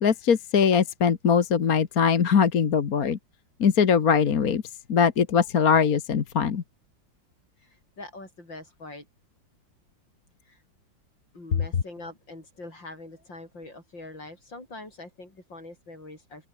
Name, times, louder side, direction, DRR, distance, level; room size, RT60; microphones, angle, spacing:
voice 1, 0.0-3.2 3.6-4.6 4.9-6.6, left 6 dB, 50° left, 1.8 m, -21 dB
voice 2, 7.6-9.1 10.4-10.6 11.3-16.5, left 2 dB, 70° left, 8.7 m, -43 dB
open air
omnidirectional pair, 2.1 m